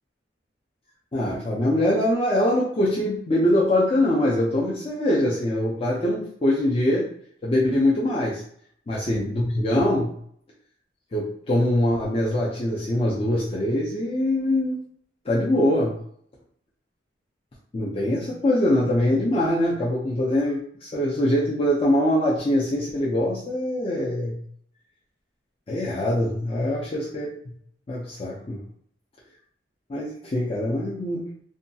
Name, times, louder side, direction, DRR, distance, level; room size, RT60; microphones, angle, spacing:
voice 1, 1.1-7.1 7.4-8.4 8.9-10.1 11.1-14.8 15.3-16.0 17.7-24.4 25.7-27.4 27.9-28.6 29.9-31.2, left 1 dB, 30° left, -6 dB, 0.4 m, -23 dB
2.7 x 2.2 x 2.7 m, 0.64 s
head